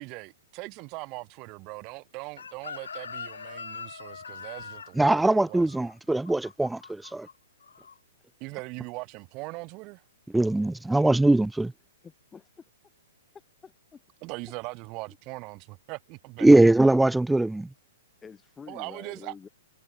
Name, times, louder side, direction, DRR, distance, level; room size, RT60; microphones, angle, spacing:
voice 1, 0.0-5.9 8.4-10.0 14.2-16.5 18.7-19.3, right 26 dB, 35° right, 2.9 m, -40 dB
Chicken rooster, 2.4-7.3 7.6-7.9, left 6 dB, 85° left, 3.2 m, -42 dB
voice 2, 5.0-7.3 10.3-11.7 16.4-17.7, right 2 dB, 5° right, 0.8 m, -21 dB
voice 3, 12.0-12.5 13.6-14.0 18.2-19.5, left 6 dB, 15° left, 3.2 m, -47 dB
hypercardioid pair, 130°, 0 cm